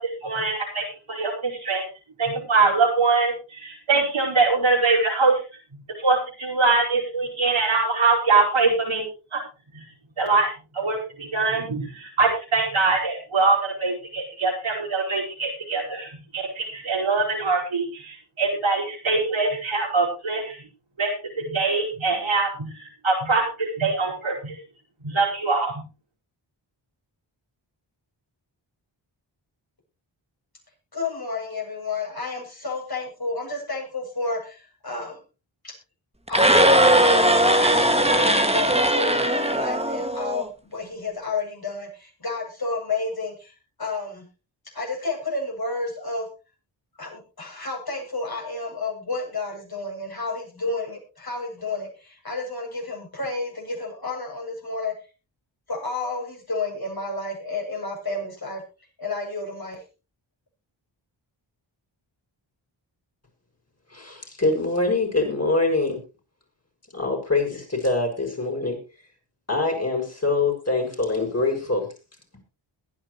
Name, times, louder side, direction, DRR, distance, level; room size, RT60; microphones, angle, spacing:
voice 1, 0.0-1.8 2.2-5.4 5.7-9.1 9.3-9.4 9.7-9.8 10.2-20.6 21.0-24.6 25.0-25.7, right 3 dB, 85° right, -3 dB, 5.1 m, -23 dB
voice 2, 30.9-35.2 35.6-35.7 36.3-44.3 44.7-46.3 47.0-54.9 55.7-58.6 59.0-59.8, left 3 dB, 50° left, 0 dB, 8.0 m, -31 dB
sound 1, 36.3-40.4, right 1 dB, 15° right, 2.0 m, -19 dB
voice 3, 63.9-66.0 66.9-68.8 69.5-71.9, left 3 dB, 30° left, 1 dB, 6.5 m, -24 dB
21.5 x 10.0 x 3.1 m, 0.32 s
cardioid pair, 45°, 48 cm